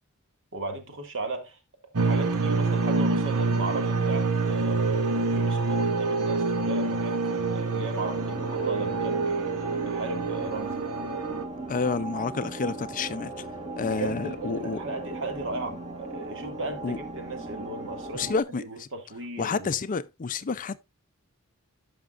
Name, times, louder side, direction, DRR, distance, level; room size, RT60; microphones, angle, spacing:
voice 1, 0.5-1.6 1.9-9.5 9.8-10.8 13.8-19.7, right 2 dB, 60° right, 2.1 m, -36 dB
sound 1, 2.0-11.4, right 3 dB, 80° right, 1.0 m, -26 dB
sound 2, 8.0-18.4, right 2 dB, 30° right, 1.6 m, -38 dB
voice 2, 11.7-13.5 13.8-14.8 16.8-17.0 18.1-18.9 19.4-20.8, left 4 dB, 40° left, 0.5 m, -29 dB
14.5 x 6.0 x 2.4 m
head